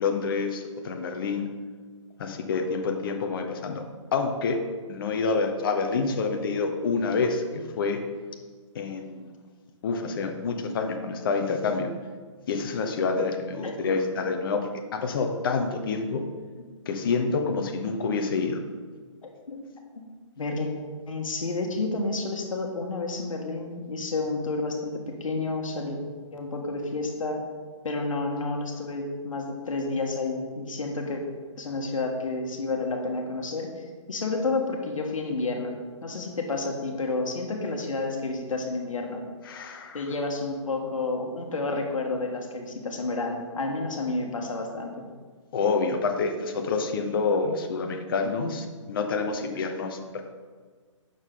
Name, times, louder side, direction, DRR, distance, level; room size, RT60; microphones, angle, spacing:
voice 1, 0.0-1.5 2.2-3.8 4.1-4.6 4.9-8.0 8.7-9.3 9.8-11.9 12.5-16.2 16.9-18.6 39.4-40.0 45.5-50.2, left 4 dB, 45° left, 4 dB, 1.0 m, -27 dB
voice 2, 20.4-20.7 21.1-26.0 26.3-27.4 27.8-31.2 31.6-35.7 36.0-39.2 39.9-45.0, left 3 dB, 85° left, 2 dB, 1.5 m, -30 dB
8.9 x 6.6 x 3.8 m, 1.5 s
hypercardioid pair, 160°, 17 cm